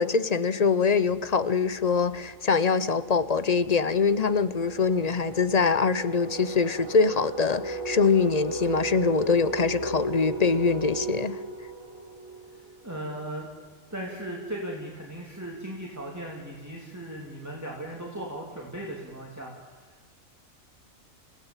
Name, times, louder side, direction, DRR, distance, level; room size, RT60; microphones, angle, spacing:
voice 1, 0.0-11.4, left 5 dB, 35° left, 0.8 m, -24 dB
sound 1, 1.3-1.4 1.6-13.2, right 2 dB, 85° left, 6.1 m, -37 dB
voice 2, 12.8-13.5 13.9-20.1, right 1 dB, 10° right, 3.1 m, -37 dB
29.0 x 16.5 x 9.0 m
omnidirectional pair, 1.4 m